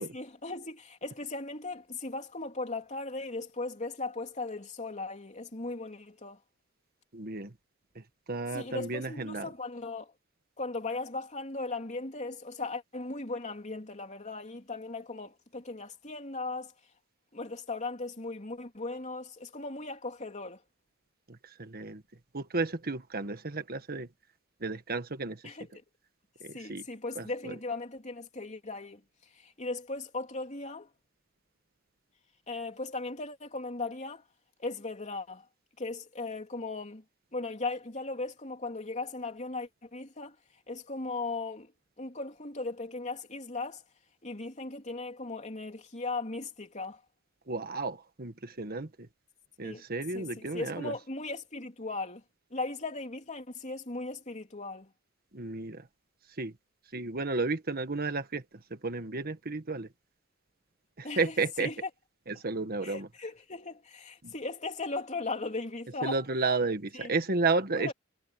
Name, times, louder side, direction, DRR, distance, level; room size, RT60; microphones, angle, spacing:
voice 1, 0.0-6.4 8.5-10.1 10.6-16.7 17.3-20.6 25.4-25.7 26.5-29.0 29.3-30.9 32.5-34.2 34.6-35.5 35.8-37.0 37.3-40.4 40.7-41.7 42.0-43.8 44.2-47.0 49.6-49.8 50.1-52.2 52.5-54.9 61.0-61.3 61.6-61.9 62.8-66.2 66.9-67.1 67.7-67.9, left 3 dB, 35° left, 3.3 m, -37 dB
voice 2, 7.1-7.5 7.9-9.5 21.3-22.0 22.3-24.1 24.6-25.5 26.4-26.8 27.1-27.5 47.5-49.1 49.6-50.9 55.3-55.9 56.4-56.5 56.9-58.4 58.7-59.9 61.0-61.7 62.3-63.1 64.2-64.3 66.0-67.9, right 3 dB, 45° right, 1.6 m, -32 dB
head